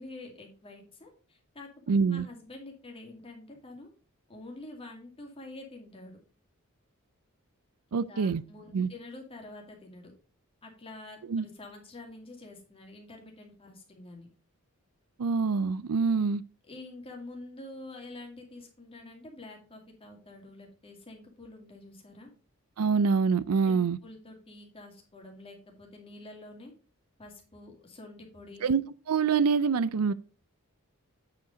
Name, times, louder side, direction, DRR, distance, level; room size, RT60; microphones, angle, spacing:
voice 1, 0.0-1.7 2.0-3.9 4.3-6.2 7.9-10.1 10.6-14.3 16.7-22.3 23.6-26.7 27.2-28.6, left 2 dB, 25° left, 2.2 m, -47 dB
voice 2, 1.9-2.3 7.9-8.4 8.7-8.9 11.3-11.5 15.2-16.4 22.8-24.0 28.6-28.8 29.1-30.1, right 5 dB, 80° right, 0.4 m, -25 dB
8.4 x 5.1 x 5.0 m
head